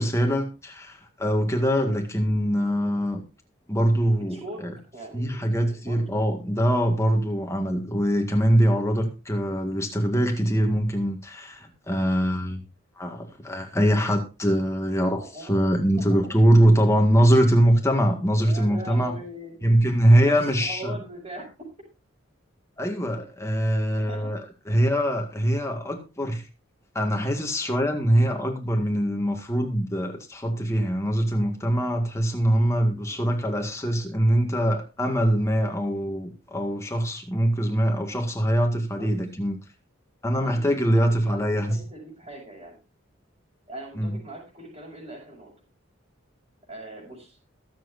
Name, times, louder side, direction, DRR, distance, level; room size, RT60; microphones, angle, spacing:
voice 1, 0.0-3.2 3.7-4.7 5.1-12.6 13.0-19.1 19.6-20.9 22.8-24.4 24.7-26.4 27.0-39.6 40.2-41.8 44.0-44.1, equal, 15° left, 1.9 m, -23 dB
voice 2, 4.2-4.7 4.9-6.2 15.2-16.3 18.3-19.6 20.2-21.7 24.0-24.3 33.0-33.2 38.8-39.1 40.4-40.7 40.9-42.8 43.7-45.5 46.7-47.4, right 1 dB, 30° right, 5.7 m, -41 dB
22.0 x 7.7 x 2.6 m
head